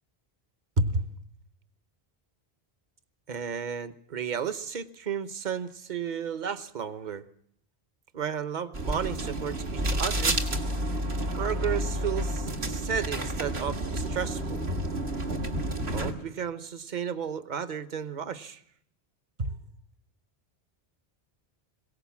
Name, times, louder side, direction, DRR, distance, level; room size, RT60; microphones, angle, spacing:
voice 1, 0.8-1.1 3.3-7.2 8.1-10.4 11.4-14.6 15.9-18.6 19.4-19.6, right 6 dB, 45° right, 12 dB, 1.1 m, -32 dB
sound 1, 8.7-16.1, right 1 dB, 75° right, 2.2 m, -30 dB
21.5 x 18.0 x 7.2 m, 0.69 s
omnidirectional pair, 1.1 m